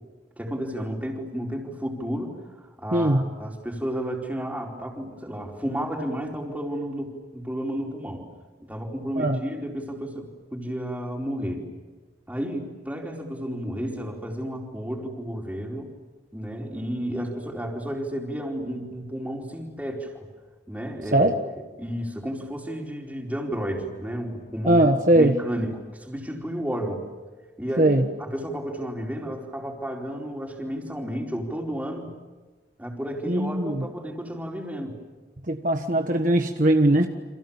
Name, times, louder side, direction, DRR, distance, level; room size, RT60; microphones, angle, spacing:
voice 1, 0.4-8.3 8.6-11.7 12.3-15.9 16.3-20.3 20.7-21.3 21.8-24.8 25.1-27.0 27.6-27.9 28.2-32.1 32.8-35.0, equal, 10° right, 0 dB, 4.4 m, -32 dB
voice 2, 2.9-3.2 9.2-9.4 21.1-21.4 24.6-25.3 27.8-28.0 33.3-33.8 35.5-37.1, right 1 dB, 45° right, 5 dB, 1.4 m, -20 dB
30.0 x 27.0 x 7.3 m, 1.3 s
head